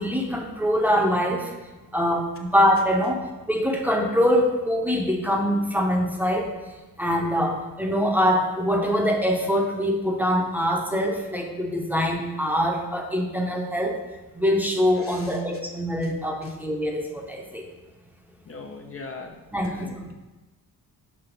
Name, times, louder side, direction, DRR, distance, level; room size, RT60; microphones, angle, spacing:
voice 1, 0.0-1.5 1.9-6.5 7.0-14.0 14.3-17.6 19.5-20.1, equal, 5° right, 0 dB, 0.8 m, -24 dB
voice 2, 15.0-15.3 18.5-19.4 19.6-20.1, left 3 dB, 35° left, 3 dB, 0.7 m, -40 dB
6.1 x 5.4 x 5.1 m, 1.1 s
cardioid pair, 135°, 38 cm